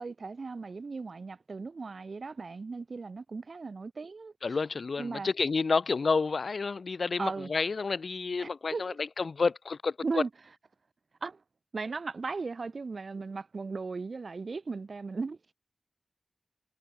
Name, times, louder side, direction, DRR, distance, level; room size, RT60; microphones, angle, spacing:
voice 1, 0.0-4.3 5.0-5.3 7.2-7.5 8.4-9.0 10.0-10.3 11.2-11.4 11.7-15.4, right 4 dB, 65° right, 1.0 m, -37 dB
voice 2, 4.4-10.2, left 4 dB, 75° left, 0.6 m, -30 dB
wide cardioid pair, 55°, 0 cm